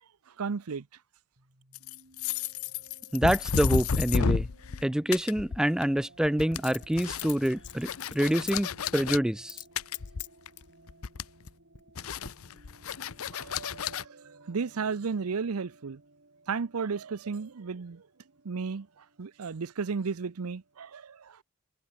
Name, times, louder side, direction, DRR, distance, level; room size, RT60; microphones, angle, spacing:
voice 1, 0.4-0.8 13.3-14.0 14.5-16.0 16.5-18.0 18.4-18.9 19.2-21.2, right 5 dB, 80° right, 0.6 m, -33 dB
sound 1, 1.4-20.9, right 2 dB, 55° right, 6.5 m, -60 dB
sound 2, 1.7-4.8 5.1-6.0 6.2-9.2 9.8-10.6 10.9-11.5 12.0-14.0, left 6 dB, 70° left, 0.7 m, -31 dB
voice 2, 3.1-4.5 4.8-9.6, equal, 5° right, 0.3 m, -27 dB
Coin (dropping), 3.9-4.0 6.5-8.5 8.9-9.0 9.4-9.7 9.9-10.7 11.4-11.9 12.2-12.3, left 12 dB, 55° left, 6.7 m, -43 dB
head